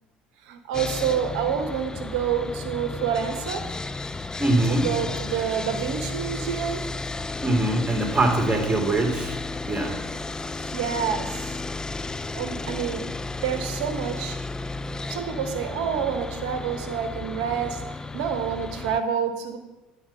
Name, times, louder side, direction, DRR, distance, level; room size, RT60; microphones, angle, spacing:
voice 1, 0.5-3.7 4.7-6.9 10.6-11.6 12.3-14.4 15.1-19.6, right 8 dB, 70° right, 7 dB, 0.8 m, -28 dB
Sawing, 0.7-19.0, left 3 dB, 15° left, 0.3 m, -33 dB
voice 2, 4.4-4.9 7.4-9.4 9.7-10.0, right 2 dB, 20° right, 3 dB, 1.8 m, -23 dB
8.8 x 4.0 x 5.4 m, 1.1 s
hypercardioid pair, 65°, 4 cm